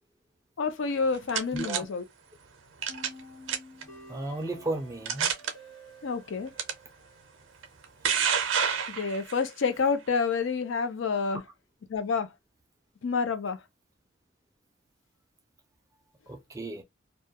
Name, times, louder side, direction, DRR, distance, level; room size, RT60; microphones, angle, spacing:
voice 1, 0.6-2.0 6.0-6.5 8.9-11.4 11.9-12.3 13.0-13.6, left 5 dB, 70° left, 0.4 m, -28 dB
sound 1, 0.9-1.8 2.8-3.2 3.5-3.8 4.5-4.6 5.1-5.5 6.6-6.7 7.6-9.4, right 7 dB, 70° right, 0.5 m, -28 dB
voice 2, 1.5-1.9 4.1-5.3 16.3-16.8, right 2 dB, 15° right, 0.4 m, -34 dB
sound 2, 2.9-7.9, left 1 dB, 90° left, 1.1 m, -51 dB
2.2 x 2.2 x 2.6 m
head